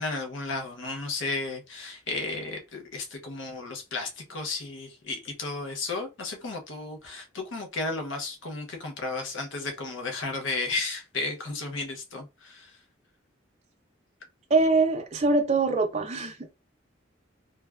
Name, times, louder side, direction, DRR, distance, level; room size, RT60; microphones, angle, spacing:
voice 1, 0.0-12.7, left 3 dB, 75° left, 0.7 m, -33 dB
voice 2, 14.5-16.4, right 3 dB, 35° right, 0.5 m, -23 dB
3.2 x 2.2 x 2.3 m
head